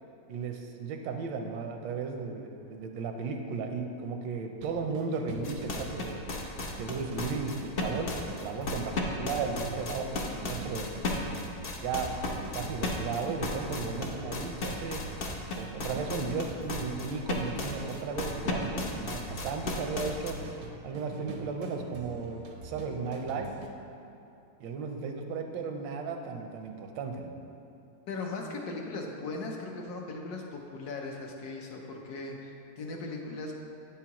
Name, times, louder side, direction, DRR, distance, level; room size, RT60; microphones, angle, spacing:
voice 1, 0.3-6.2 6.7-10.9 11.8-12.1 12.4-15.0 15.5-20.4 20.8-23.5 24.6-27.4, right 4 dB, 85° right, 4 dB, 1.3 m, -35 dB
sound 1, 4.6-23.7, right 4 dB, 65° right, 0.6 m, -46 dB
sound 2, 5.4-20.3, left 3 dB, 85° left, 0.5 m, -34 dB
voice 2, 28.1-33.5, left 3 dB, 65° left, 0 dB, 1.1 m, -38 dB
8.4 x 7.2 x 2.9 m, 2.8 s
omnidirectional pair, 2.0 m